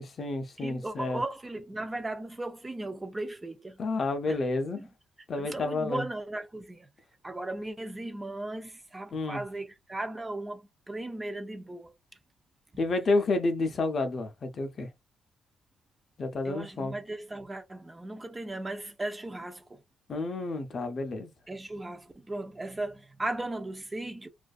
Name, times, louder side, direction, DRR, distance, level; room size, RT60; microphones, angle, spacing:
voice 1, 0.0-1.2 3.8-4.8 5.3-6.1 9.1-9.4 12.8-14.9 16.2-16.9 20.1-21.3, left 3 dB, 45° left, 0.5 m, -30 dB
voice 2, 0.6-3.8 4.3-4.4 4.8-4.9 5.4-6.9 7.2-10.6 10.9-11.9 16.4-19.8 21.5-24.3, right 2 dB, 20° right, 0.5 m, -37 dB
2.5 x 2.4 x 2.3 m
cardioid pair, 90°, 0 cm